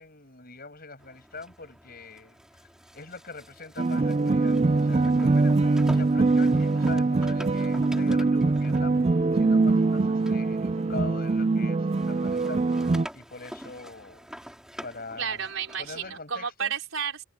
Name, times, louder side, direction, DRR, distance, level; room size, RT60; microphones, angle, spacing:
voice 1, 0.0-9.0 9.3-14.3 14.8-15.4 15.8-16.7, left 3 dB, 45° left, 7.4 m, -43 dB
sound 1, 1.0-11.6 11.9-16.2, equal, 5° right, 5.4 m, -47 dB
sound 2, 3.8-13.1, right 3 dB, 30° right, 0.4 m, -23 dB
voice 2, 15.2-17.2, right 7 dB, 80° right, 4.5 m, -32 dB
head